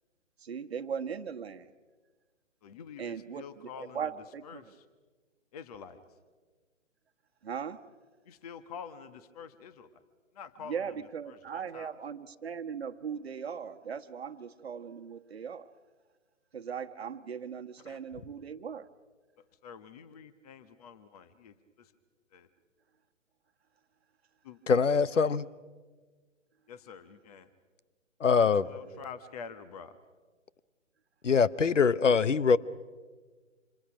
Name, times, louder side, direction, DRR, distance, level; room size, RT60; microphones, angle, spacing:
voice 1, 0.4-1.7 3.0-4.7 7.4-7.8 10.6-15.7 16.5-18.9 28.9-29.1 31.7-31.8, right 7 dB, 55° right, 7 dB, 1.3 m, -39 dB
voice 2, 2.6-4.0 4.4-4.6 5.5-6.0 8.3-9.9 10.4-10.8 11.3-11.9 17.9-18.0 19.6-21.5 22.3-22.5 24.4-24.8 25.2-25.4 26.7-27.5 28.3-30.0, left 6 dB, 30° left, 12 dB, 1.2 m, -47 dB
voice 3, 24.7-25.5 28.2-28.7 31.2-32.6, left 5 dB, 70° left, 18 dB, 1.0 m, -23 dB
30.0 x 27.5 x 6.1 m, 1.4 s
figure-of-eight pair, 135°, 38 cm